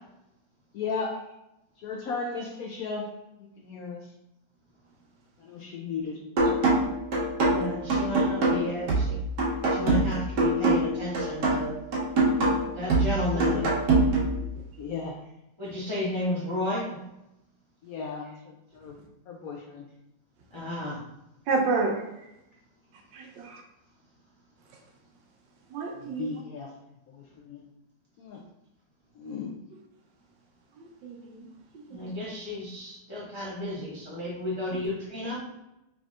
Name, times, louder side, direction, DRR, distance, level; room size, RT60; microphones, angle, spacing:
voice 1, 0.7-1.2 1.8-3.1 3.4-4.1 5.4-6.6 13.3-13.7 14.8-15.2 17.8-19.0 19.3-19.8 25.9-26.7 27.1-27.7 28.2-28.4 29.2-29.5, left 4 dB, 70° left, -1 dB, 0.8 m, -36 dB
sound 1, 6.4-14.4, right 2 dB, 70° right, 1.5 m, -24 dB
voice 2, 7.4-9.2 9.7-11.7 12.8-13.6 15.6-16.9 20.5-21.0 31.9-35.4, left 1 dB, 40° left, -7 dB, 0.4 m, -32 dB
voice 3, 21.5-22.0 23.1-23.6 25.7-26.4 30.8-31.5 31.7-32.1, right 3 dB, 85° right, 2 dB, 1.4 m, -30 dB
3.8 x 3.5 x 2.4 m, 0.87 s
omnidirectional pair, 1.9 m